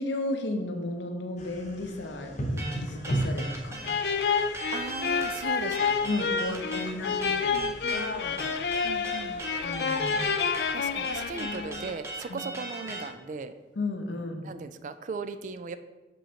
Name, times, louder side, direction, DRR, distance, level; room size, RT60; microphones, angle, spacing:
voice 1, 0.0-3.9 6.0-8.5 9.5-10.4 12.3-12.4 13.8-14.4, left 2 dB, 80° left, 4 dB, 0.7 m, -34 dB
sound 1, 1.4-12.4, right 1 dB, 40° left, 0.7 m, -39 dB
sound 2, 2.6-13.1, right 2 dB, 15° right, 0.6 m, -38 dB
sound 3, 3.8-11.9, left 6 dB, 60° left, 0.4 m, -29 dB
voice 2, 4.7-6.2 6.4-6.6 7.5-8.2 8.8-9.4 10.7-13.5 14.4-15.8, right 4 dB, 45° right, 11 dB, 0.3 m, -38 dB
6.4 x 5.2 x 2.9 m, 1.2 s
head